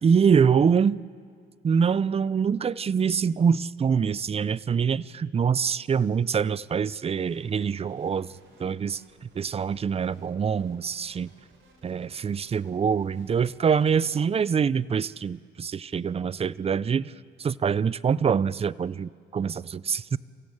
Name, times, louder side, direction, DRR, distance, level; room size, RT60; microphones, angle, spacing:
voice 1, 0.0-1.0 1.6-8.3 8.6-9.0 9.4-11.3 11.8-17.1 17.4-20.2, right 6 dB, 30° right, 20 dB, 0.5 m, -24 dB
sound 1, 7.1-14.3, right 3 dB, 75° right, 4.8 m, -59 dB
29.5 x 15.0 x 8.6 m, 2.2 s
cardioid pair, 90°, 20 cm